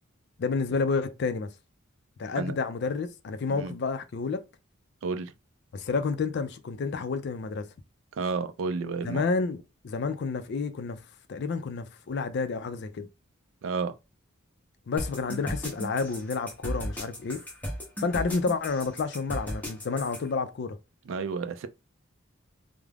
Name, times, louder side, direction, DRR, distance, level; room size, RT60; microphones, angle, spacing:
voice 1, 0.4-1.5 2.2-4.4 5.7-7.7 9.0-11.0 11.3-13.1 14.9-17.4 18.0-20.8, left 4 dB, 55° left, 0.3 m, -30 dB
voice 2, 5.0-5.3 8.2-9.2 13.6-13.9 21.1-21.7, right 4 dB, 65° right, 0.3 m, -31 dB
sound 1, 15.0-20.2, equal, 10° left, 0.6 m, -35 dB
2.3 x 2.0 x 3.2 m
head